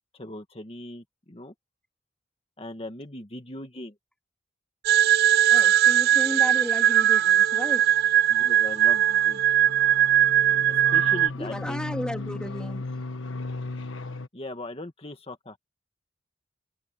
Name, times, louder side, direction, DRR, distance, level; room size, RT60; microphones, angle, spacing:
voice 1, 0.1-1.5 2.6-3.9 8.3-9.4 10.9-11.8 14.3-15.6, left 1 dB, 30° left, 1.7 m, -39 dB
sound 1, 4.8-11.3, right 11 dB, 55° right, 0.3 m, -20 dB
voice 2, 5.5-7.9 11.4-12.8, equal, 5° left, 2.0 m, -34 dB
sound 2, 7.2-14.3, left 3 dB, 80° left, 1.3 m, -37 dB
head